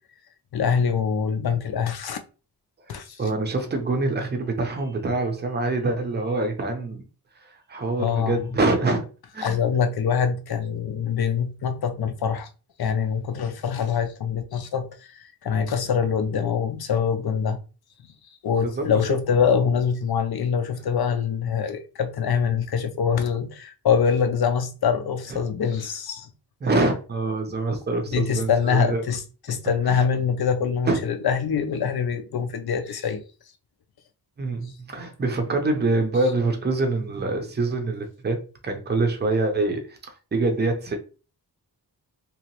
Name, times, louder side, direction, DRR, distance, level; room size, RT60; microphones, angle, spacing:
voice 1, 0.5-2.2 2.9-3.2 8.0-8.4 9.4-12.5 12.8-17.6 18.4-26.3 28.1-29.2 29.5-33.2, left 6 dB, 65° left, 0.6 m, -24 dB
voice 2, 2.9-7.1 7.4-9.1 9.3-9.6 18.6-18.9 25.3-25.4 26.6-29.0 29.9-30.0 30.9-31.0 34.4-40.0 40.3-41.0, right 2 dB, 25° right, 0.6 m, -25 dB
3.0 x 2.9 x 2.9 m
wide cardioid pair, 175°, 41 cm